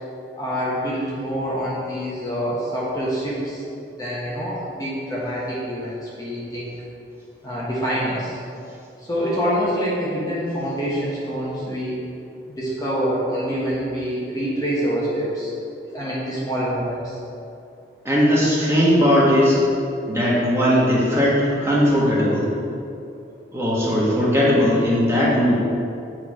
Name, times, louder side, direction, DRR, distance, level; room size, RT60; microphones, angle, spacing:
voice 1, 0.4-3.6 4.0-6.7 7.4-8.4 9.0-12.0 12.6-15.5 15.8-17.2, equal, 20° left, -7 dB, 1.3 m, -26 dB
voice 2, 18.0-19.6 20.1-22.5 23.5-25.5, equal, 15° right, -7 dB, 1.5 m, -18 dB
8.2 x 4.8 x 4.8 m, 2.6 s
head